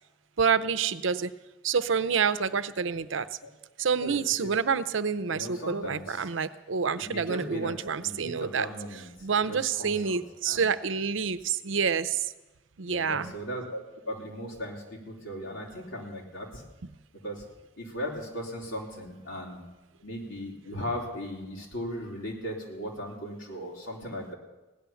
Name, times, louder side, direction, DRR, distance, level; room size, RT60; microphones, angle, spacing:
voice 1, 0.4-1.3 1.6-3.3 3.8-8.7 9.2-12.3 12.8-13.3, right 6 dB, 80° right, 13 dB, 0.7 m, -28 dB
voice 2, 4.0-4.6 5.3-6.3 7.0-10.6 12.9-16.6 17.2-17.4 17.8-19.7 20.0-24.3, equal, 90° left, -1 dB, 3.5 m, -37 dB
17.0 x 10.5 x 7.1 m, 1.1 s
head